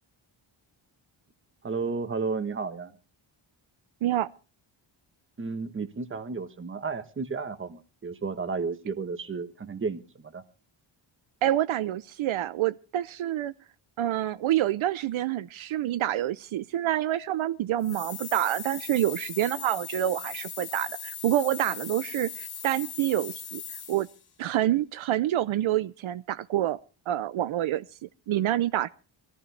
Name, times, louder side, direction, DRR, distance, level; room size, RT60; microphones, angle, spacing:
voice 1, 1.6-2.9 5.4-10.4, right 4 dB, 25° right, 1.1 m, -33 dB
voice 2, 11.4-13.5 14.0-23.6 23.9-24.1 24.4-26.8 27.1-28.9, right 13 dB, 80° right, 0.6 m, -27 dB
sound 1, 17.8-24.2, left 8 dB, 50° left, 1.5 m, -39 dB
21.0 x 14.0 x 3.2 m
wide cardioid pair, 180°, 48 cm